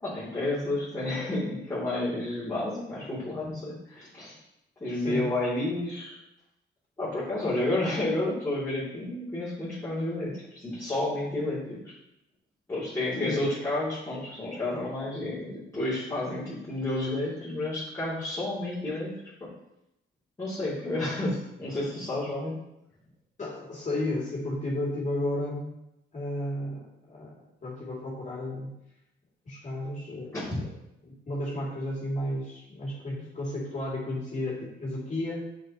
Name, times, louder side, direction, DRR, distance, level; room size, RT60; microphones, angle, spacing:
voice 1, 0.0-4.4 4.8-6.2 7.0-11.8 12.7-19.1 20.4-22.5 30.3-30.4, left 2 dB, 15° left, -12 dB, 2.9 m, -31 dB
voice 2, 4.9-5.3 13.2-13.5 23.4-25.8 26.1-27.3 27.6-28.7 29.5-30.6 31.0-35.5, left 1 dB, 40° left, -5 dB, 2.8 m, -33 dB
7.6 x 6.5 x 3.0 m, 0.86 s
cardioid pair, 90°, 20 cm